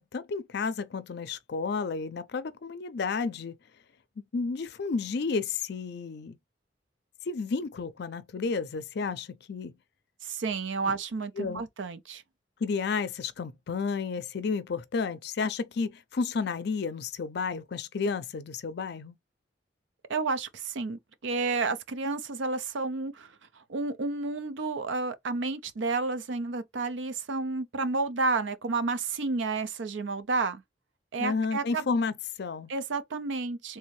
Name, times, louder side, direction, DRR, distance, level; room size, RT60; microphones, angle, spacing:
voice 1, 0.0-3.6 4.2-6.4 7.3-9.7 11.4-11.6 12.6-19.2 31.2-32.7, left 4 dB, 60° left, 0.5 m, -31 dB
voice 2, 10.2-12.2 20.1-23.3 23.6-30.6 31.1-31.8 32.7-33.8, right 3 dB, 85° right, 0.6 m, -31 dB
3.3 x 2.7 x 3.1 m
head